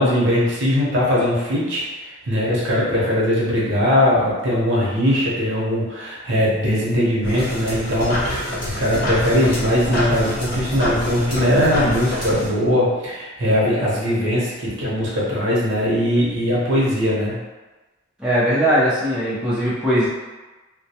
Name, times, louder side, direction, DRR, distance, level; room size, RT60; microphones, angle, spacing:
voice 1, 0.0-17.4, equal, 65° right, -6 dB, 0.8 m, -20 dB
sound 1, 7.2-12.5, left 1 dB, 50° left, 0.9 m, -26 dB
voice 2, 18.2-20.1, equal, 5° right, -10 dB, 0.5 m, -19 dB
2.2 x 2.1 x 2.7 m, 1.2 s
head